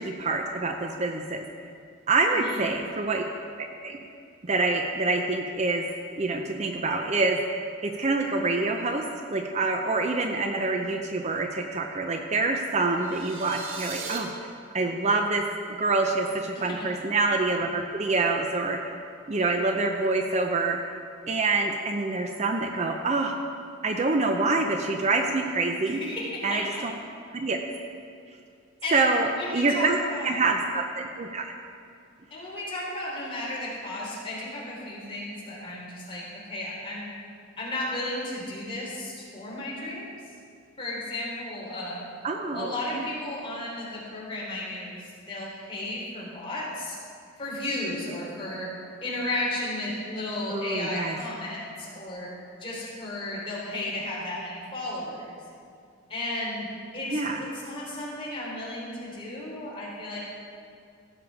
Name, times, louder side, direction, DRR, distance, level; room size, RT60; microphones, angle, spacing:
voice 1, 0.0-1.4 2.1-3.2 3.6-4.0 4.4-5.9 6.2-14.3 14.7-15.4 15.8-18.9 19.3-20.8 21.3-23.4 23.8-26.0 26.4-26.9 27.3-27.6 28.9-30.0 30.2-31.5 42.2-43.1 50.5-51.2 57.1-57.4, right 3 dB, 35° right, 3 dB, 0.6 m, -26 dB
voice 2, 2.3-2.6 16.7-16.9 25.9-26.8 28.8-29.1 29.4-30.4 32.3-37.2 37.6-40.1 40.8-42.0 42.5-47.0 47.4-48.7 49.0-52.3 52.6-55.4 56.1-56.7 56.9-60.2, left 1 dB, 25° left, -6 dB, 3.3 m, -34 dB
sound 1, 13.0-14.2, right 5 dB, 75° right, 1.4 m, -38 dB
16.0 x 6.8 x 4.8 m, 2.3 s
head